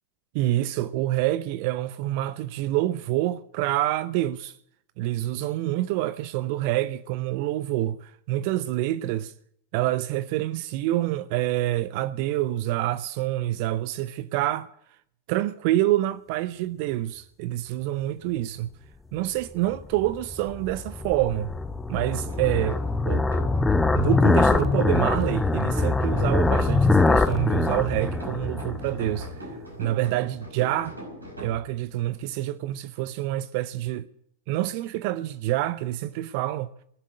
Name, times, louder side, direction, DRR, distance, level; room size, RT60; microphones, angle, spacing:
voice 1, 0.3-4.6 5.0-9.3 9.7-14.7 15.3-18.7 19.1-21.5 21.9-23.3 23.9-29.4 29.8-31.0 31.4-34.1 34.5-36.7, right 15 dB, 45° right, 0.5 m, -27 dB
sound 1, 19.7-29.3, left 3 dB, 10° left, 0.6 m, -23 dB
sound 2, 22.2-31.6, equal, 80° right, 5.4 m, -40 dB
19.5 x 7.4 x 9.9 m
figure-of-eight pair, 90°, 0 cm